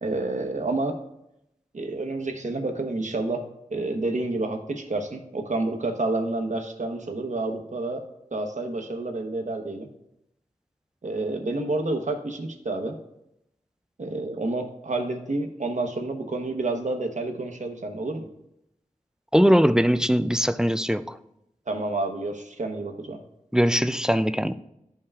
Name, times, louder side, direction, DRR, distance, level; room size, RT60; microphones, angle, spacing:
voice 1, 0.0-1.0 1.7-3.4 3.7-8.0 8.3-9.9 11.0-13.0 14.0-18.3 21.7-23.2, right 2 dB, 60° right, 1.0 m, -29 dB
voice 2, 19.3-21.2 23.5-24.5, equal, 5° right, 0.3 m, -21 dB
12.5 x 5.5 x 2.4 m
wide cardioid pair, 70°, 14 cm